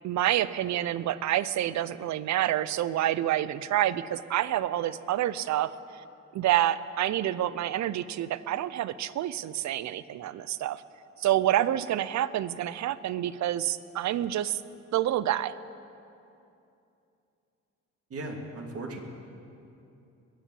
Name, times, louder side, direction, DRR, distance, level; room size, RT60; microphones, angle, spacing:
voice 1, 0.0-5.7 6.3-10.8 11.2-14.6 14.9-15.5, right 12 dB, 65° right, 17 dB, 0.6 m, -28 dB
voice 2, 18.1-19.0, right 2 dB, 50° right, 2 dB, 2.4 m, -37 dB
21.0 x 7.3 x 8.6 m, 2.7 s
cardioid pair, 90°, 30 cm